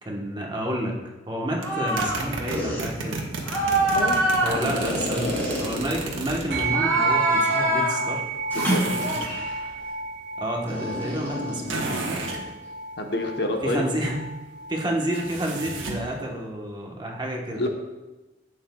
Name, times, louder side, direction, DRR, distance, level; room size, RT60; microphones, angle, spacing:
voice 1, 0.0-1.0 1.3-3.2 4.4-8.2 10.4-12.2 13.6-14.2 14.7-17.7, right 1 dB, 25° right, -1 dB, 1.1 m, -30 dB
sound 1, 1.6-2.2 2.5-2.8 3.4-6.2 6.6-8.0 8.5-9.6 10.7-12.5, right 1 dB, 10° left, 2.5 m, -25 dB
sound 2, 1.6-6.7 8.5-9.3 11.7-12.4 15.1-16.1, right 3 dB, 90° right, 1.2 m, -32 dB
sound 3, 6.5-16.2, right 4 dB, 60° right, 1.1 m, -32 dB
voice 2, 8.5-8.8 13.0-13.8 17.5-17.7, left 1 dB, 55° left, 3 dB, 1.0 m, -27 dB
11.0 x 8.3 x 2.3 m, 1.1 s
head